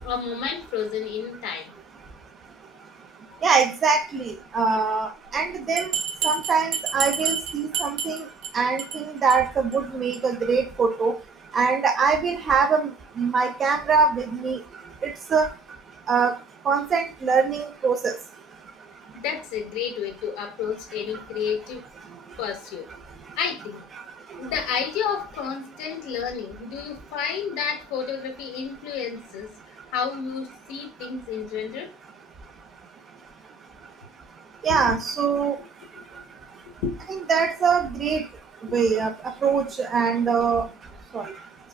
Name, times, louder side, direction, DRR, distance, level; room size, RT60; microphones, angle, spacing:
voice 1, 0.0-1.7 3.3-3.4 19.1-21.8 22.4-22.9 23.4-23.8 24.4-29.5 29.9-31.9 34.7-34.9 36.2-36.3 36.8-37.0 41.3-41.4, left 7 dB, 65° left, 1.0 m, -30 dB
voice 2, 3.4-5.9 6.2-8.2 8.5-11.2 11.5-12.9 13.2-14.6 15.0-15.5 16.1-16.4 16.7-18.2 34.6-35.6 37.3-38.2 38.7-39.1 39.4-40.7 41.1-41.3, right 5 dB, 30° right, 0.4 m, -23 dB
Bell, 5.8-8.5 8.8-9.0 9.3-9.4 9.7-9.8 10.1-10.2, right 7 dB, 65° right, 0.8 m, -28 dB
4.7 x 2.0 x 2.3 m
supercardioid pair, 135°, 0 cm